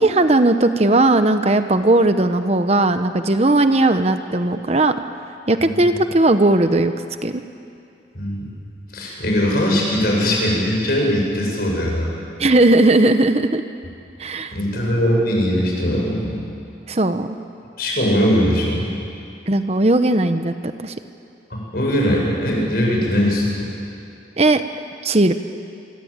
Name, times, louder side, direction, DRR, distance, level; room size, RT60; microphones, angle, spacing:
voice 1, 0.0-4.9 5.5-6.9 7.2-7.4 12.4-13.6 14.2-14.6 16.9-17.4 19.5-20.5 20.8-20.9 24.4-24.6 25.0-25.3, right 2 dB, 35° right, 9 dB, 0.9 m, -17 dB
voice 2, 8.1-8.5 8.9-12.1 14.5-16.4 17.8-18.8 21.5-23.7, equal, 55° left, -2 dB, 7.7 m, -20 dB
25.0 x 25.0 x 8.9 m, 2.5 s
head